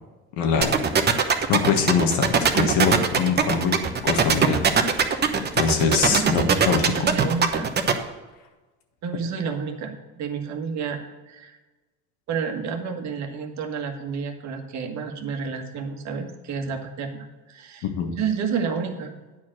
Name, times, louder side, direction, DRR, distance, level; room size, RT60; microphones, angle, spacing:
voice 1, 0.4-3.7 4.0-4.7 5.0-6.9 17.8-18.1, left 6 dB, 70° left, 4 dB, 1.5 m, -24 dB
sound 1, 0.6-7.9, right 6 dB, 30° right, 0.9 m, -20 dB
voice 2, 5.8-7.7 9.0-11.6 12.3-17.9 18.1-19.1, right 6 dB, 50° right, 4 dB, 1.5 m, -30 dB
9.5 x 4.5 x 7.5 m, 1.2 s
supercardioid pair, 90°, 35 cm